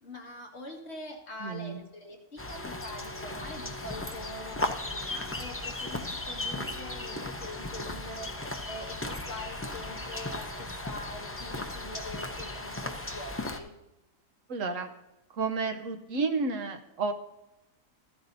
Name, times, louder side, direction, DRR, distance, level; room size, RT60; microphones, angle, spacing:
voice 1, 0.0-13.7, left 2 dB, 45° left, 0 dB, 2.2 m, -44 dB
voice 2, 1.4-1.8 14.5-14.9 15.3-17.1, right 4 dB, 60° right, 6 dB, 1.2 m, -31 dB
sound 1, 2.4-13.6, left 2 dB, 20° left, 0.3 m, -36 dB
14.5 x 13.5 x 2.7 m, 0.95 s
omnidirectional pair, 1.6 m